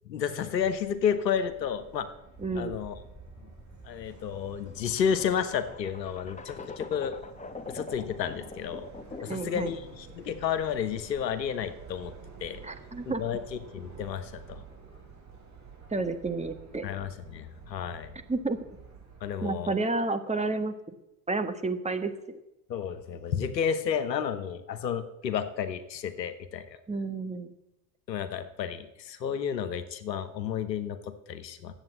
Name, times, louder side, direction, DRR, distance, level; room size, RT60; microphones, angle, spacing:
voice 1, 0.0-2.1 2.5-2.9 3.8-7.2 7.7-8.9 9.2-12.1 12.4-12.6 13.1-14.6 16.8-18.1 19.2-19.8 22.7-26.7 28.1-31.7, left 8 dB, 90° left, 10 dB, 1.0 m, -31 dB
Subway metro underground, 0.6-19.3, right 5 dB, 35° right, 4.2 m, -51 dB
sound 1, 2.3-9.5, left 3 dB, 15° left, 1.2 m, -44 dB
voice 2, 2.4-2.8 9.3-9.7 12.6-13.2 15.9-16.8 18.3-18.6 19.4-20.7 21.3-22.4 26.9-27.5, right 3 dB, 15° right, 7 dB, 1.4 m, -30 dB
10.5 x 8.1 x 7.8 m, 0.90 s
hypercardioid pair, 70°, 49 cm